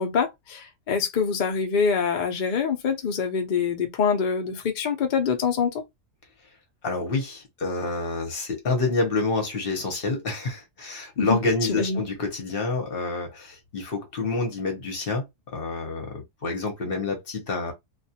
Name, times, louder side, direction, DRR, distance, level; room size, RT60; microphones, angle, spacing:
voice 1, 0.0-5.8 11.2-11.4 11.7-12.0, left 6 dB, 85° left, 0.4 m, -25 dB
voice 2, 6.8-15.2 15.5-17.7, left 3 dB, 45° left, 0.8 m, -28 dB
2.5 x 2.3 x 2.7 m
omnidirectional pair, 1.7 m